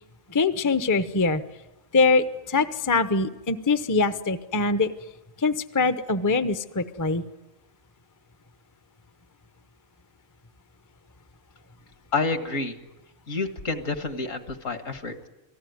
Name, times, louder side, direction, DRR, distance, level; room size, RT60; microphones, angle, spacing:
voice 1, 0.3-1.4 1.9-4.9 5.4-7.2, left 3 dB, 15° left, 11 dB, 0.7 m, -23 dB
voice 2, 12.1-12.8 13.3-15.3, left 3 dB, 65° left, 8 dB, 2.1 m, -29 dB
28.5 x 19.0 x 9.4 m, 1.0 s
omnidirectional pair, 1.5 m